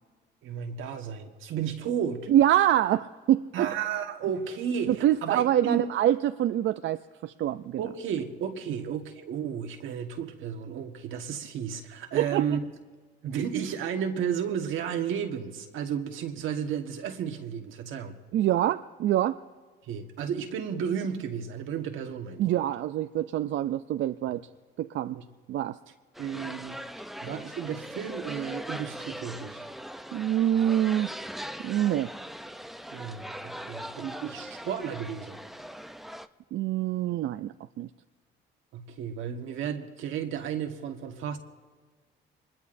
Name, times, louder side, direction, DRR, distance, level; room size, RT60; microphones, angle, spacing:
voice 1, 0.4-2.3 3.5-5.9 7.8-12.6 13.2-18.2 19.8-22.7 25.1-25.2 26.2-26.8 27.2-29.7 32.9-35.4 38.7-41.4, right 8 dB, 85° right, 1.5 m, -33 dB
voice 2, 2.3-3.7 4.9-7.8 12.1-12.6 18.3-19.4 22.4-24.4 24.8-25.2 25.5-25.8 30.1-31.1 31.6-32.1 36.5-37.9, right 12 dB, 70° right, 0.4 m, -25 dB
sound 1, 26.1-36.3, equal, ahead, 0.5 m, -40 dB
25.0 x 21.0 x 2.6 m
cardioid pair, 90°, 20 cm